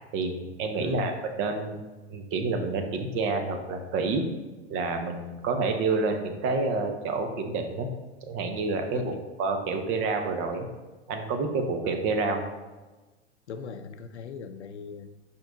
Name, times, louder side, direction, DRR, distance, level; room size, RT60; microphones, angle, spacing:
voice 1, 0.1-1.1 1.4-1.8 2.1-4.2 4.7-7.9 8.3-9.1 9.4-10.7 11.1-12.4, right 3 dB, 35° right, 5 dB, 0.9 m, -28 dB
voice 2, 0.8-1.1 8.9-9.2 13.5-15.1, left 6 dB, 75° left, 9 dB, 0.6 m, -39 dB
5.4 x 4.4 x 3.9 m, 1.2 s
figure-of-eight pair, 90°, 34 cm